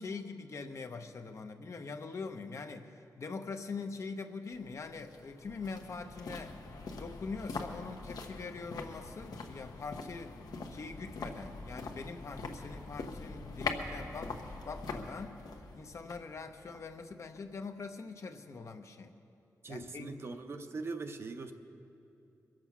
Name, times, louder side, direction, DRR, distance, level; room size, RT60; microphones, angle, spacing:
voice 1, 0.0-2.9 3.2-6.6 6.9-10.3 10.7-14.4 14.6-15.4 15.7-19.1 19.7-20.1, left 4 dB, 50° left, 6 dB, 0.7 m, -43 dB
sound 1, 4.5-17.6 17.9-18.0, left 3 dB, 80° left, 1.0 m, -43 dB
voice 2, 19.6-21.5, right 3 dB, 40° right, 6 dB, 0.7 m, -41 dB
22.0 x 7.5 x 6.1 m, 2.7 s
wide cardioid pair, 140°, 7 cm